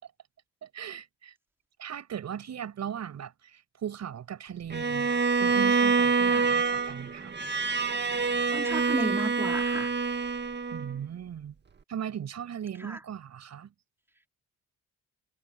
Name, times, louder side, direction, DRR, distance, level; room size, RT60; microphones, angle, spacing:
voice 1, 0.6-1.3 1.8-7.4 10.7-11.5 11.9-13.7, right 9 dB, 60° right, 7.1 m, -38 dB
Bowed string instrument, 4.7-11.0, right 4 dB, 35° right, 2.0 m, -26 dB
voice 2, 8.3-9.9 12.8-13.0, right 1 dB, 10° right, 4.1 m, -34 dB
cardioid pair, 90°, 30 cm